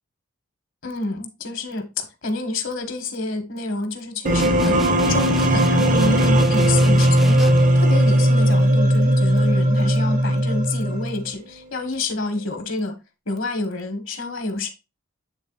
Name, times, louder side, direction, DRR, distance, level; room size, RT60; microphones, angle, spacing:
voice 1, 0.8-13.0 13.3-14.7, left 2 dB, 60° left, 1.5 m, -28 dB
sound 1, 4.2-11.3, right 1 dB, 35° right, 0.7 m, -18 dB
sound 2, 4.4-7.8, equal, ahead, 0.5 m, -31 dB
8.5 x 3.7 x 4.0 m
head